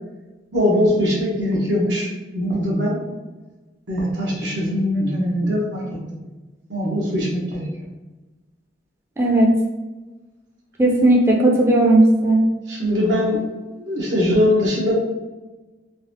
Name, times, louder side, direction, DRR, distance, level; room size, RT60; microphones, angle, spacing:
voice 1, 0.5-3.0 3.9-5.8 6.7-7.6 12.7-13.4 13.7-14.9, left 1 dB, 90° right, -4 dB, 1.1 m, -21 dB
voice 2, 9.2-9.5 10.8-12.4, right 1 dB, 15° right, -2 dB, 0.4 m, -15 dB
4.0 x 2.7 x 2.8 m, 1.2 s
head